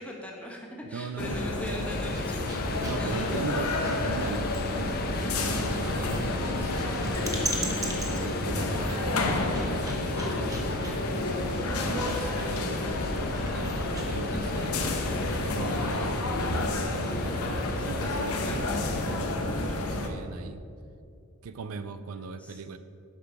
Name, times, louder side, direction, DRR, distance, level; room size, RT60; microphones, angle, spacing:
voice 1, 0.0-2.6 3.0-3.6 22.4-22.6, left 1 dB, 5° left, -1 dB, 1.1 m, -42 dB
voice 2, 0.9-1.4 1.6-1.8 2.8-11.1 11.7-16.2 16.9-17.5 17.8-20.6 21.4-22.8, right 4 dB, 75° right, 11 dB, 0.4 m, -40 dB
sound 1, 1.2-20.1, left 2 dB, 90° left, 1.0 m, -30 dB
sound 2, 1.6-14.2, right 2 dB, 15° right, 1.1 m, -41 dB
sound 3, 1.8-19.2, left 3 dB, 45° left, 0.6 m, -39 dB
8.3 x 5.8 x 5.9 m, 2.4 s
head